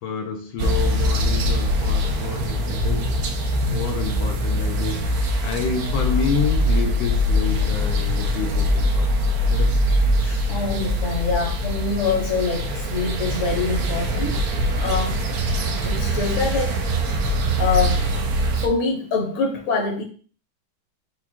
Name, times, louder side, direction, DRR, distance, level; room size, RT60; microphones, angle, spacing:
voice 1, 0.0-3.1 3.6-5.2 5.4-9.1 9.4-9.7 10.2-10.5, left 5 dB, 80° left, 3 dB, 1.4 m, -29 dB
sound 1, 0.6-18.7, equal, 75° right, 0.8 m, -22 dB
voice 2, 10.5-14.4 14.8-15.2 15.8-16.8 17.6-18.1 18.6-20.0, left 4 dB, 45° left, 1 dB, 1.1 m, -25 dB
4.8 x 2.3 x 4.4 m, 0.41 s
omnidirectional pair, 2.3 m